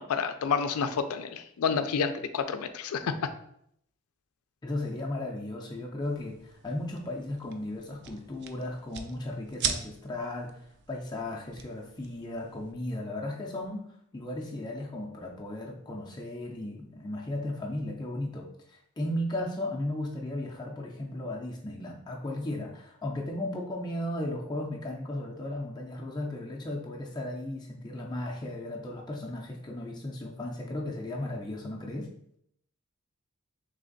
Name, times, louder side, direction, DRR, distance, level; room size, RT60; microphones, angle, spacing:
voice 1, 0.0-3.2, left 6 dB, 85° left, 9 dB, 0.4 m, -29 dB
voice 2, 4.6-10.6 10.9-13.9 14.1-32.1, left 1 dB, 20° left, -1 dB, 0.4 m, -35 dB
sound 1, 6.0-12.7, right 6 dB, 50° right, 0.4 m, -40 dB
3.4 x 3.2 x 3.8 m, 0.72 s
head